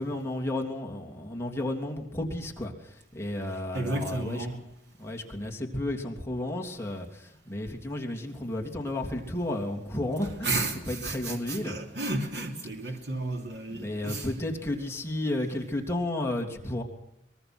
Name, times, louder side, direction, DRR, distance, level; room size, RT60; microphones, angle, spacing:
voice 1, 0.0-4.5 5.0-11.8 13.7-16.8, left 1 dB, 15° left, 3.2 m, -32 dB
voice 2, 3.7-4.6 10.4-14.3, right 2 dB, 80° right, 3.0 m, -32 dB
24.0 x 22.0 x 6.2 m
head